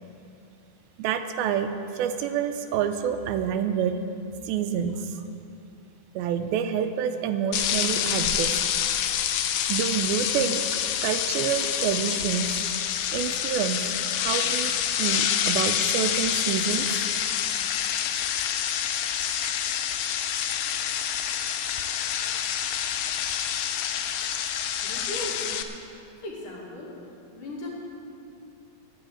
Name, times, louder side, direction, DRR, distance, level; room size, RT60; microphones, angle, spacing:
voice 1, 1.0-4.0 4.5-5.2 6.2-8.6 9.7-12.6 13.1-13.8 14.2-17.0, right 8 dB, 85° right, 8 dB, 2.4 m, -28 dB
sound 1, 7.5-25.6, left 9 dB, 80° left, 1.9 m, -27 dB
voice 2, 24.8-25.7 26.2-26.9 27.3-27.7, left 1 dB, 60° left, -4 dB, 3.7 m, -37 dB
10.5 x 10.0 x 7.8 m, 2.7 s
omnidirectional pair, 4.3 m